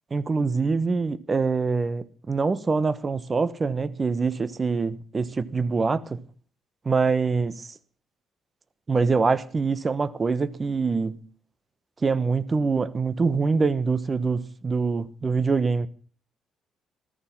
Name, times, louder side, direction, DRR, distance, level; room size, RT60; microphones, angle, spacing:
voice 1, 0.1-6.2 6.8-7.7 8.9-11.2 12.0-15.9, right 4 dB, 35° right, 1.1 m, -24 dB
14.5 x 14.0 x 5.6 m
hypercardioid pair, 50°, 0 cm